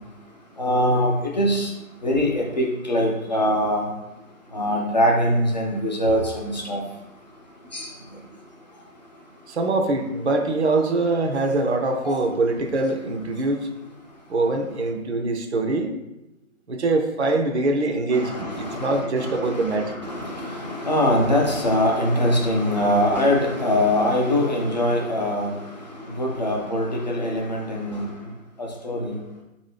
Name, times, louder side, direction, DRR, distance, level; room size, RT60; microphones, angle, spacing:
voice 1, 0.6-1.7 2.0-3.8 4.5-6.8 7.7-7.9 12.0-12.3 18.1-28.1 28.6-29.2, equal, 30° left, -2 dB, 0.6 m, -23 dB
voice 2, 9.5-13.7 14.3-15.9 16.7-19.9, right 2 dB, 55° right, 4 dB, 0.5 m, -23 dB
5.0 x 2.6 x 3.2 m, 0.94 s
figure-of-eight pair, 150°, 41 cm